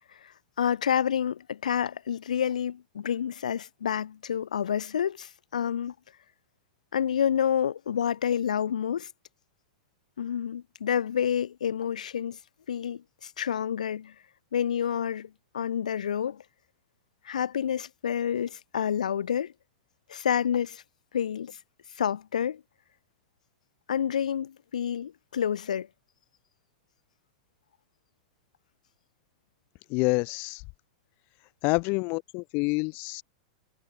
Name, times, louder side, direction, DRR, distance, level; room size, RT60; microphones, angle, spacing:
voice 1, 0.6-5.9 6.9-9.1 10.2-12.4 12.7-14.1 14.5-16.4 17.2-19.5 20.1-20.8 21.1-21.6 22.0-22.6 23.9-25.9, left 8 dB, 80° left, 3.8 m, -29 dB
voice 2, 29.9-30.6 31.6-33.2, left 30 dB, 50° left, 1.4 m, -27 dB
hypercardioid pair, 105°, 4 cm